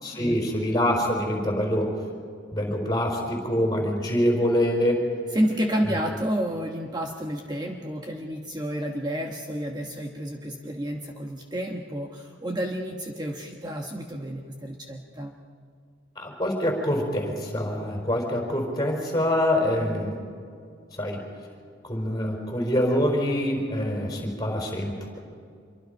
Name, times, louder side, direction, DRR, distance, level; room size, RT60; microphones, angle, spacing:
voice 1, 0.0-1.9 2.5-5.0 16.2-20.2 20.9-21.2 21.8-25.2, equal, 20° left, 0 dB, 4.8 m, -25 dB
voice 2, 5.3-15.3, equal, 20° right, 2 dB, 1.2 m, -30 dB
26.5 x 23.5 x 5.4 m, 2.3 s
head